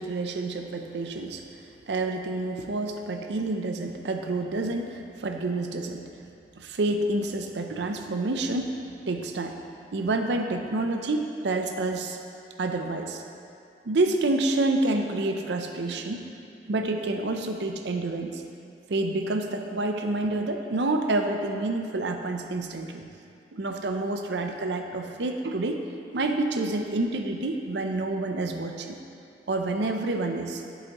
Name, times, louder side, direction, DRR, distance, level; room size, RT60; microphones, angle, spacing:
voice 1, 0.0-1.4 1.9-6.0 6.6-8.7 9.1-9.6 9.9-12.2 12.6-13.2 13.8-16.3 16.7-18.4 18.9-23.0 23.5-25.8 26.1-29.0 29.5-30.6, right 2 dB, 80° right, 4 dB, 0.6 m, -28 dB
8.7 x 8.0 x 3.0 m, 2.5 s
head